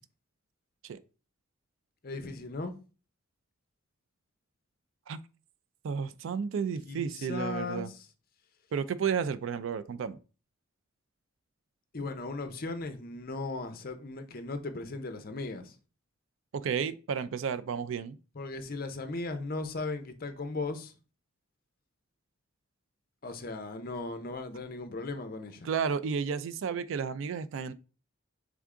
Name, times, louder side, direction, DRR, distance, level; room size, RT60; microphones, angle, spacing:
voice 1, 2.0-2.7 6.9-8.0 11.9-15.8 18.3-20.9 23.2-25.7, left 3 dB, 45° left, 0.6 m, -37 dB
voice 2, 5.8-7.9 8.7-10.2 16.5-18.2 25.6-27.7, right 6 dB, 70° right, 0.3 m, -32 dB
3.6 x 3.5 x 3.6 m
head